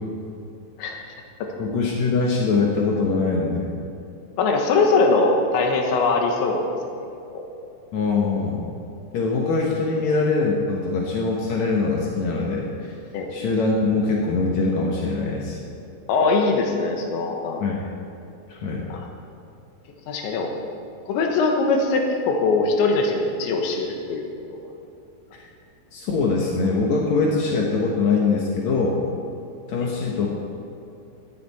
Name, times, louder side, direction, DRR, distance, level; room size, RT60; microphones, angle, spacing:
voice 1, 1.6-3.7 7.9-8.6 9.1-12.9 13.3-15.6 17.6-17.9 18.5-18.9 25.3-25.4 25.9-29.0 29.7-30.3, left 4 dB, 75° left, -2 dB, 1.7 m, -23 dB
voice 2, 4.4-6.7 7.3-7.5 13.1-13.3 16.1-17.6 18.9-19.1 20.1-20.5 21.1-24.2 24.5-24.6, left 3 dB, 90° left, 2 dB, 3.7 m, -21 dB
17.0 x 13.0 x 4.3 m, 2.6 s
omnidirectional pair, 5.2 m